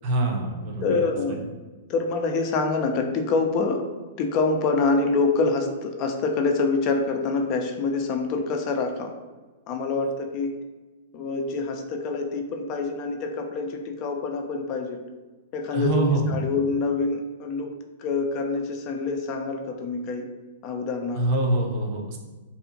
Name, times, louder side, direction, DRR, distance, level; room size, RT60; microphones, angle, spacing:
voice 1, 0.0-1.0 15.7-16.5 21.2-22.2, right 2 dB, 45° right, 1 dB, 0.5 m, -25 dB
voice 2, 0.8-1.6 1.9-3.9 4.2-9.1 9.7-10.6 11.1-15.0 15.5-17.7 18.0-20.3 20.6-21.2, left 4 dB, 40° left, 3 dB, 0.3 m, -26 dB
2.7 x 2.4 x 2.6 m, 1.3 s
figure-of-eight pair, 110°, 0 cm